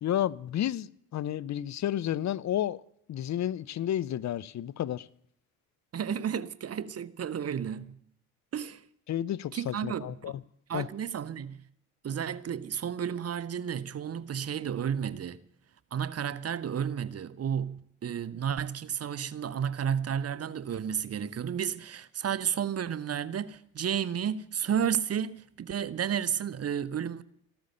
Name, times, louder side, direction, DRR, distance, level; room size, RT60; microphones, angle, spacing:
voice 1, 0.0-2.8 3.1-5.1 9.1-10.3 10.7-10.9, left 11 dB, 40° left, 0.7 m, -31 dB
voice 2, 5.9-7.9 8.5-8.8 9.5-10.4 10.7-11.6 12.0-15.4 15.9-27.2, right 8 dB, 35° right, 1.0 m, -32 dB
14.5 x 13.0 x 6.8 m
hypercardioid pair, 55°, 42 cm